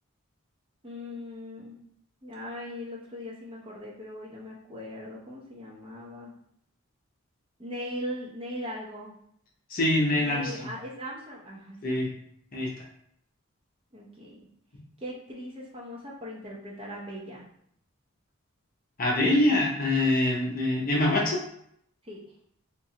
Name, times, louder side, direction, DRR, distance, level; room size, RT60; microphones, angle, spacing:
voice 1, 0.8-1.8 2.2-6.3 7.6-9.1 10.1-12.0 13.9-14.5 15.0-17.4 22.0-22.2, equal, 25° right, -4 dB, 0.6 m, -39 dB
voice 2, 9.7-10.7 11.8-12.1 12.5-12.7 19.0-21.4, left 1 dB, 40° left, -2 dB, 0.7 m, -24 dB
3.0 x 2.6 x 2.7 m, 0.70 s
head